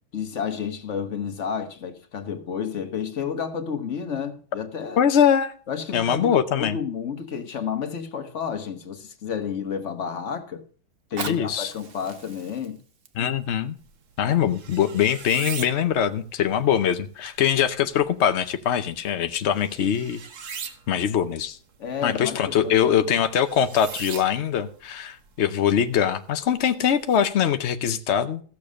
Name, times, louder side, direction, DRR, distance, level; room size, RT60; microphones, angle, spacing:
voice 1, 0.1-5.0 5.7-10.6 11.1-12.8 14.2-14.4 21.8-23.0, left 7 dB, 40° left, 1.3 m, -31 dB
voice 2, 5.0-5.5 5.9-6.8 11.3-11.7 13.2-13.8 14.2-20.2 20.9-21.6 22.0-28.4, left 9 dB, 80° left, 0.6 m, -22 dB
Fire, 10.9-15.9 16.5-16.6, right 5 dB, 40° right, 0.9 m, -41 dB
sound 1, 13.8-27.2, right 6 dB, 70° right, 2.0 m, -43 dB
15.0 x 6.9 x 6.3 m
omnidirectional pair, 2.2 m